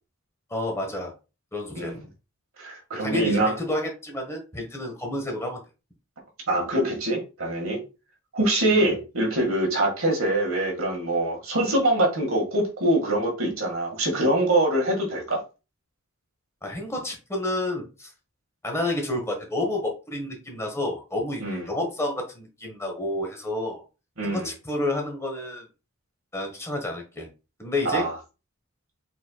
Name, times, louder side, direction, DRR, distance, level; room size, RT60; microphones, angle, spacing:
voice 1, 0.5-1.1 1.5-2.1 3.0-5.6 8.8-8.9 16.6-18.1 18.6-23.8 24.2-25.6 26.3-27.3 27.6-28.1, left 1 dB, 15° left, 1.1 m, -30 dB
voice 2, 2.6-3.6 6.5-7.8 8.3-15.4 21.4-21.6 24.2-24.5 27.8-28.1, right 1 dB, 70° right, 1.8 m, -24 dB
4.4 x 4.4 x 2.3 m
head